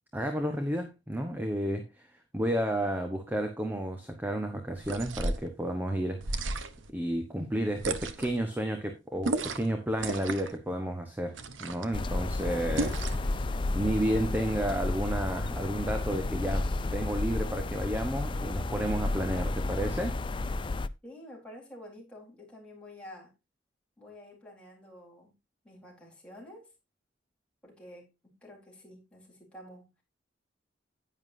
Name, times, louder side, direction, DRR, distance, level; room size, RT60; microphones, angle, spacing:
voice 1, 0.1-1.9 2.3-6.6 6.9-20.2, right 1 dB, 10° right, 1.1 m, -32 dB
Liquid moving in a plastic bottle, 4.8-5.5 6.2-6.9 7.8-8.4 9.2-9.7 10.0-10.6 11.3-11.9 12.8-13.3, right 2 dB, 80° right, 1.0 m, -33 dB
sound 1, 11.9-20.9, left 2 dB, 25° left, 0.4 m, -32 dB
voice 2, 21.0-23.3 24.0-25.3 25.6-26.7 27.6-29.9, left 1 dB, 5° left, 4.1 m, -49 dB
10.5 x 9.6 x 2.7 m
head